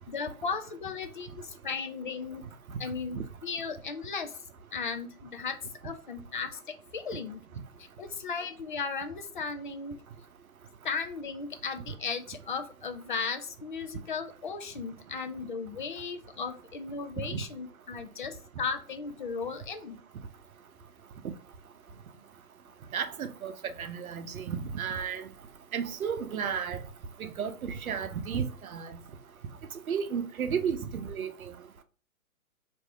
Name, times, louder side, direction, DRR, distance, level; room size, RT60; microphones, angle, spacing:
voice 1, 0.1-2.4 2.8-4.3 4.7-5.6 5.8-7.4 7.8-10.0 10.8-20.0 22.2-22.3, left 5 dB, 35° left, 0.4 m, -36 dB
voice 2, 22.9-23.5 23.8-25.2 25.7-26.8 27.2-29.0 29.9-31.5, right 7 dB, 70° right, 0.7 m, -33 dB
3.1 x 2.7 x 3.4 m
hypercardioid pair, 140°, 44 cm